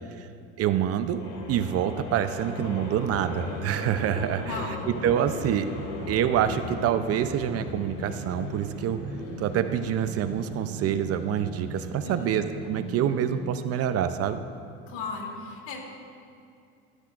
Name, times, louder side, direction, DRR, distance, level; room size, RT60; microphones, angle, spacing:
voice 1, 0.6-1.2 1.5-4.6 5.0-5.7 6.1-9.0 9.4-14.4, right 9 dB, 45° right, 10 dB, 0.6 m, -26 dB
sound 1, 1.0-14.3, left 1 dB, 80° left, 2.5 m, -37 dB
voice 2, 4.5-4.9 12.0-12.4 14.9-15.8, left 4 dB, 65° left, 0 dB, 2.8 m, -36 dB
18.5 x 9.9 x 2.5 m, 2.5 s
supercardioid pair, 100°, 33 cm